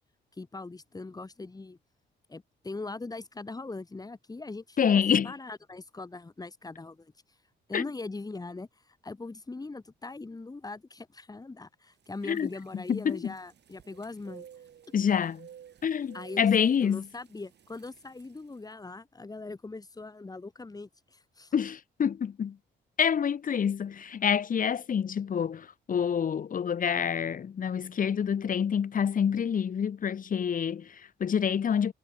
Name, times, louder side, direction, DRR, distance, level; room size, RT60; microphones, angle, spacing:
voice 1, 0.4-1.8 2.3-7.1 7.7-14.5 16.1-21.5, left 3 dB, 20° left, 1.6 m, -41 dB
voice 2, 4.8-5.3 7.7-7.8 12.2-13.3 14.9-15.5 15.8-17.0 21.5-22.6 23.0-31.9, left 7 dB, 45° left, 1.0 m, -27 dB
sound 1, 12.0-18.6, right 9 dB, 60° right, 4.4 m, -54 dB
cardioid pair, 90°, 20 cm